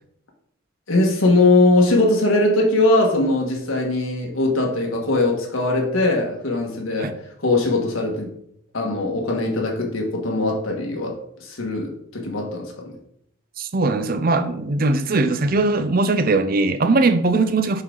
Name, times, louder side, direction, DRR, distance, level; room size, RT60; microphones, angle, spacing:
voice 1, 0.9-8.3 8.7-12.9, left 2 dB, 80° left, 1 dB, 1.5 m, -20 dB
voice 2, 13.6-17.8, right 3 dB, 45° right, 10 dB, 0.5 m, -20 dB
5.6 x 5.5 x 3.8 m, 0.71 s
head